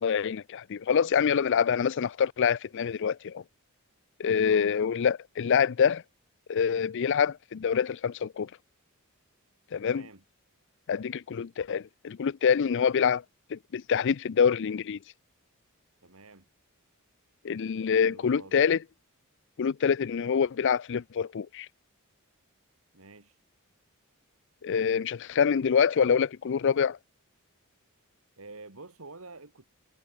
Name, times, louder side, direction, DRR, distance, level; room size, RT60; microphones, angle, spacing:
voice 1, 0.0-3.4 4.2-6.0 6.5-8.5 9.7-10.1 10.9-13.2 13.5-15.0 17.4-18.8 19.6-21.7 24.6-27.0, left 7 dB, 55° left, 0.4 m, -26 dB
voice 2, 9.8-10.2 16.0-16.5 18.0-18.6 22.9-23.4 28.4-29.7, right 3 dB, 70° right, 2.7 m, -48 dB
head